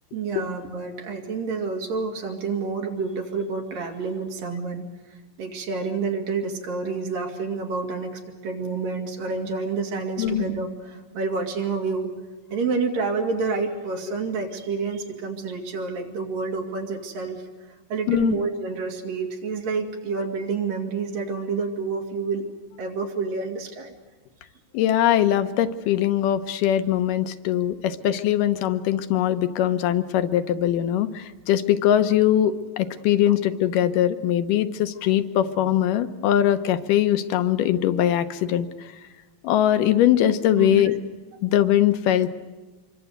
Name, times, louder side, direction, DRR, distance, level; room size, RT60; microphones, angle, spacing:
voice 1, 0.1-4.8 5.4-8.1 8.4-12.1 12.5-17.4 17.9-22.4 22.8-23.9 40.5-40.9, right 4 dB, 90° right, 2 dB, 4.4 m, -28 dB
voice 2, 24.7-38.9 39.4-40.9 41.4-42.3, left 11 dB, 80° left, 10 dB, 2.6 m, -21 dB
26.5 x 23.5 x 8.1 m, 1.2 s
omnidirectional pair, 3.8 m